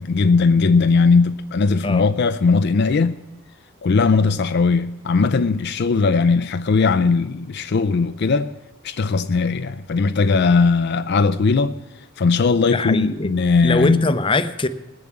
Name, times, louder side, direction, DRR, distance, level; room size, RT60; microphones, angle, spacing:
voice 1, 0.0-3.2 3.8-8.5 8.8-11.8 12.2-14.0, left 4 dB, 55° left, 0.5 m, -18 dB
voice 2, 12.7-13.3 13.6-14.7, left 2 dB, 25° left, 0.7 m, -21 dB
19.5 x 7.1 x 8.6 m
head